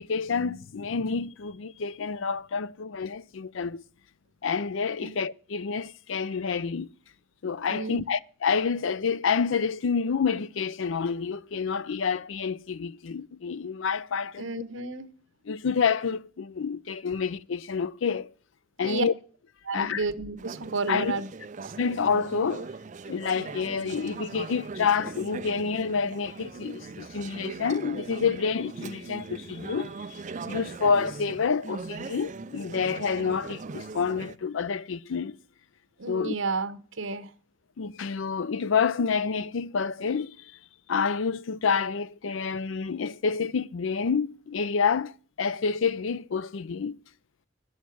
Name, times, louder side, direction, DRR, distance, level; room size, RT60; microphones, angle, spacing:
voice 1, 0.0-3.8 4.4-6.9 7.4-14.6 15.5-18.3 18.8-19.1 19.7-20.0 20.9-21.2 21.8-22.7 23.1-35.4 36.1-36.4 37.8-40.5 40.9-47.0, left 5 dB, 75° left, 0.5 m, -28 dB
voice 2, 7.7-8.0 14.4-15.1 18.8-19.0 19.6-21.3 21.6-21.7 36.0-37.3, right 3 dB, 75° right, 1.1 m, -31 dB
Conversation / Chatter, 20.4-34.4, right 4 dB, 40° right, 0.5 m, -40 dB
10.5 x 6.4 x 9.2 m
head